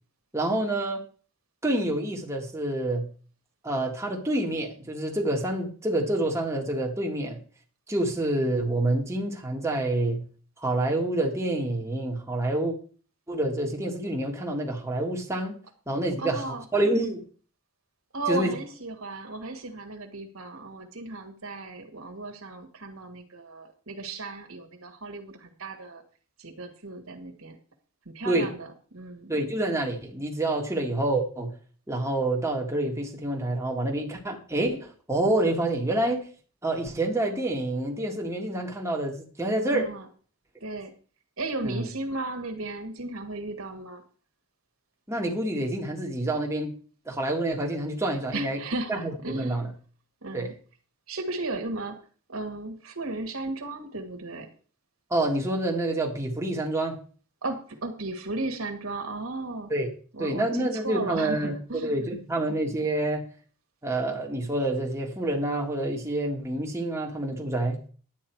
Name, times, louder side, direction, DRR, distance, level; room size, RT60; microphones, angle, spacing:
voice 1, 0.3-1.0 1.6-3.1 3.6-7.4 7.9-10.2 10.6-12.8 13.3-15.6 15.9-17.2 18.3-18.5 28.3-28.5 29.3-31.5 31.9-36.3 36.6-39.9 41.6-41.9 45.1-46.7 47.1-48.6 48.9-49.7 50.3-50.5 55.1-57.0 59.7-59.9 60.2-63.2 63.8-67.9, right 1 dB, 10° right, 0 dB, 1.7 m, -27 dB
voice 2, 16.2-16.7 18.1-26.0 26.4-27.6 28.1-29.3 39.7-40.1 40.6-40.9 41.4-44.0 48.3-49.6 50.2-50.5 51.1-52.0 52.3-54.5 57.4-59.7 60.1-62.2, right 2 dB, 70° right, 4 dB, 1.8 m, -35 dB
10.5 x 8.8 x 4.6 m, 0.41 s
head